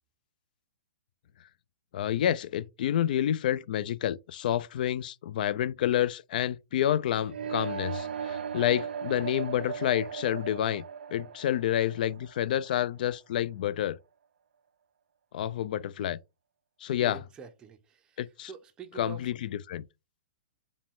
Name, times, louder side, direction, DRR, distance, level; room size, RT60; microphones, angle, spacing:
voice 1, 1.9-10.8 11.1-14.0 15.3-16.2 16.8-17.2 18.2-18.5 19.0-19.9, left 11 dB, 55° left, 0.3 m, -29 dB
sound 1, 7.3-13.2, right 7 dB, 85° right, 0.4 m, -37 dB
voice 2, 17.0-19.3, right 6 dB, 15° right, 0.5 m, -46 dB
4.9 x 2.2 x 3.5 m
hypercardioid pair, 140°, 5 cm